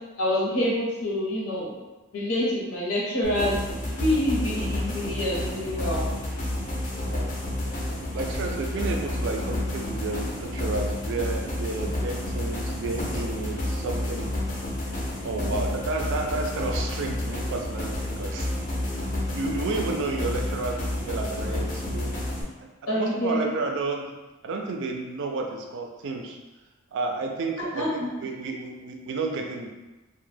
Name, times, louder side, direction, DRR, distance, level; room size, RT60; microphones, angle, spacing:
voice 1, 0.2-1.7 2.1-6.1 15.4-15.7 22.9-23.5 27.7-28.3, left 1 dB, 80° left, -5 dB, 0.8 m, -27 dB
sound 1, 3.2-22.4, left 1 dB, 40° left, 0.5 m, -30 dB
voice 2, 8.1-14.4 15.2-18.5 19.3-22.1 22.9-24.1 24.4-26.4 26.9-29.7, right 3 dB, 60° right, 2 dB, 0.4 m, -31 dB
2.1 x 2.1 x 3.2 m, 1.1 s
head